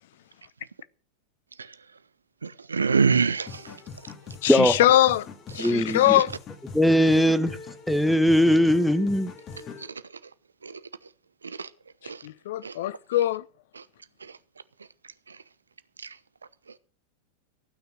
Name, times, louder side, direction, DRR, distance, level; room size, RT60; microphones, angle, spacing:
voice 1, 2.4-3.8 5.6-6.2 9.8-10.0 10.6-10.8 11.4-11.7 12.0-12.2 12.6-12.8 13.7-13.8 14.2-14.4 15.3-15.4 16.0-16.2, right 5 dB, 75° right, 0.8 m, -27 dB
sound 1, 3.5-9.9, left 5 dB, 30° left, 2.4 m, -42 dB
voice 2, 4.4-5.3 5.6-6.3 12.2-13.4, left 14 dB, 55° left, 0.6 m, -22 dB
voice 3, 5.6-6.2 6.7-7.6 7.9-9.3, equal, ahead, 1.2 m, -20 dB
15.0 x 9.5 x 6.3 m
figure-of-eight pair, 90°, 0 cm